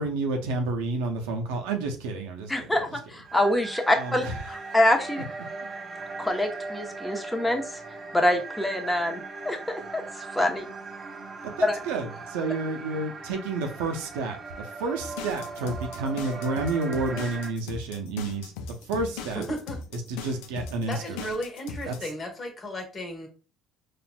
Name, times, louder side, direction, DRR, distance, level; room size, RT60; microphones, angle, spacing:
voice 1, 0.0-2.7 4.0-4.3 11.4-14.4 14.8-18.5 18.9-19.4 20.1-21.2 21.9-22.0, right 3 dB, 90° right, 4 dB, 0.6 m, -30 dB
voice 2, 2.5-5.2 6.2-7.8 8.1-10.6 11.6-11.8, left 1 dB, 10° left, 3 dB, 0.8 m, -25 dB
sound 1, 3.2-17.5, right 3 dB, 40° right, 0.7 m, -39 dB
sound 2, 15.0-22.1, left 5 dB, 85° left, 0.4 m, -39 dB
voice 3, 19.3-19.8 20.9-23.3, equal, 40° left, 2 dB, 1.3 m, -34 dB
4.2 x 2.5 x 2.2 m, 0.36 s
supercardioid pair, 80°, 0 cm